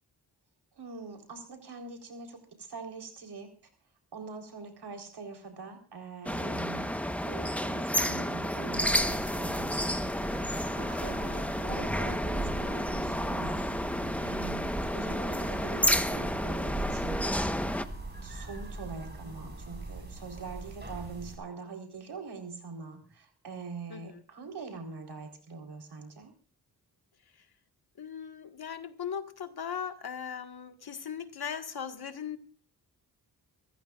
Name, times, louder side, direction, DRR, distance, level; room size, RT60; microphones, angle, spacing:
voice 1, 0.8-3.5 4.1-6.9 7.2-11.2 11.6-13.6 14.2-17.2 18.2-26.3, right 4 dB, 90° right, 4 dB, 4.3 m, -43 dB
sound 1, 6.3-17.9, equal, 5° left, 1.1 m, -31 dB
sound 2, 8.7-21.4, right 2 dB, 25° right, 5.0 m, -40 dB
voice 2, 11.0-11.5 23.9-24.2 27.3-27.5 28.0-32.4, left 7 dB, 75° left, 7 dB, 1.8 m, -39 dB
26.5 x 15.0 x 2.5 m, 0.39 s
wide cardioid pair, 100°, 38 cm